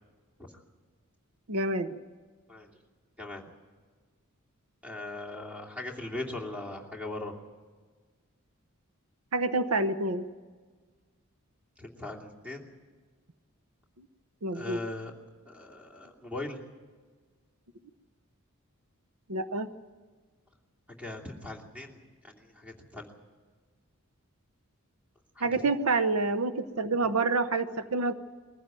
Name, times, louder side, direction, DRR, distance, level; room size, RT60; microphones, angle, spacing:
voice 1, 1.5-2.0 9.3-10.3 14.4-14.8 19.3-19.7 25.4-28.1, right 3 dB, 80° right, 11 dB, 0.9 m, -28 dB
voice 2, 4.8-7.3 11.8-12.7 14.5-15.1 15.4-16.6 21.0-22.0 22.2-23.1 25.3-25.5, left 2 dB, 5° right, 1 dB, 2.7 m, -39 dB
22.0 x 15.0 x 9.1 m, 1.5 s
head